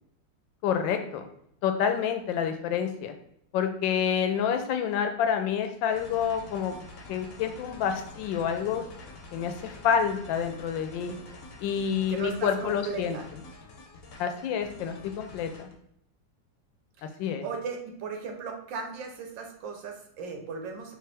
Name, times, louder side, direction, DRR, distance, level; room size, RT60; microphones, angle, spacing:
voice 1, 0.6-1.2 1.6-3.1 3.5-6.7 7.1-8.9 9.3-11.1 11.6-13.4 14.2-15.7 17.2-17.4, left 8 dB, 85° left, 7 dB, 1.3 m, -28 dB
sound 1, 5.9-15.7, left 2 dB, 60° left, 1.0 m, -47 dB
voice 2, 12.1-13.2 17.0-17.1 17.4-20.9, right 5 dB, 80° right, 3 dB, 1.5 m, -37 dB
4.7 x 2.7 x 3.4 m, 0.73 s
omnidirectional pair, 2.0 m